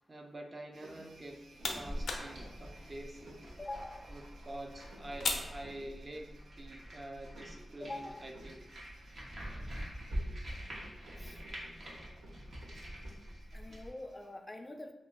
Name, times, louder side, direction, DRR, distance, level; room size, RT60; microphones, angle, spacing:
voice 1, 0.1-1.4 1.7-3.4 4.1-8.6, right 1 dB, 35° right, 2 dB, 0.6 m, -47 dB
sound 1, 0.7-14.3, right 1 dB, 85° right, 0.6 m, -57 dB
sound 2, 1.1-6.4, left 3 dB, 85° left, 0.5 m, -42 dB
sound 3, 1.5-13.9, equal, 65° right, 1.1 m, -45 dB
voice 2, 3.6-4.1 7.8-8.2 11.2-11.4 13.5-14.9, left 2 dB, 25° left, 5 dB, 0.4 m, -44 dB
2.9 x 2.6 x 3.7 m, 0.95 s
cardioid pair, 65°, 0 cm